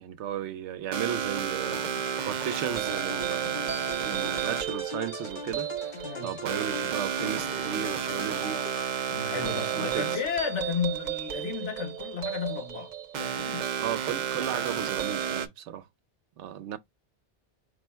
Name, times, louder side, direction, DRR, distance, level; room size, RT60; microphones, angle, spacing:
voice 1, 0.0-1.8 2.2-3.7 4.0-8.6 9.3-10.2 13.8-15.9 16.4-16.8, right 9 dB, 80° right, 0.9 m, -35 dB
sound 1, 0.9-15.5, right 8 dB, 50° right, 0.6 m, -32 dB
sound 2, 1.6-9.3, left 3 dB, 50° left, 1.0 m, -41 dB
voice 2, 9.1-13.7, left 6 dB, 90° left, 1.5 m, -33 dB
4.8 x 2.1 x 4.4 m
omnidirectional pair, 1.2 m